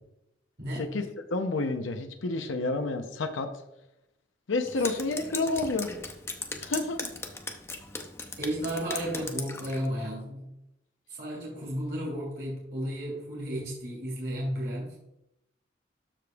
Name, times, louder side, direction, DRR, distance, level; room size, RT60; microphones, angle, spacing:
voice 1, 0.6-0.9 4.8-4.9 8.4-10.5 11.1-15.0, equal, 60° right, -5 dB, 2.9 m, -33 dB
voice 2, 1.3-3.5 4.5-5.9 6.6-7.1, left 3 dB, 90° left, 7 dB, 0.7 m, -29 dB
Drip, 4.7-9.9, left 3 dB, 15° left, 0.5 m, -38 dB
13.0 x 5.1 x 2.3 m, 0.86 s
head